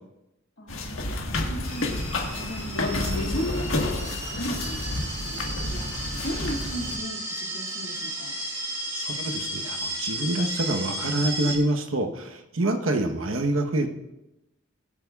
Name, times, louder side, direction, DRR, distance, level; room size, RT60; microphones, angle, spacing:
voice 1, 0.6-8.4, equal, 65° left, -1 dB, 2.3 m, -37 dB
sound 1, 0.7-7.0, left 2 dB, 85° left, 1.6 m, -29 dB
sound 2, 1.6-11.6, right 1 dB, 15° right, 2.7 m, -34 dB
voice 2, 8.9-13.9, right 1 dB, 90° right, 5 dB, 1.2 m, -26 dB
22.0 x 8.6 x 2.4 m, 0.94 s
head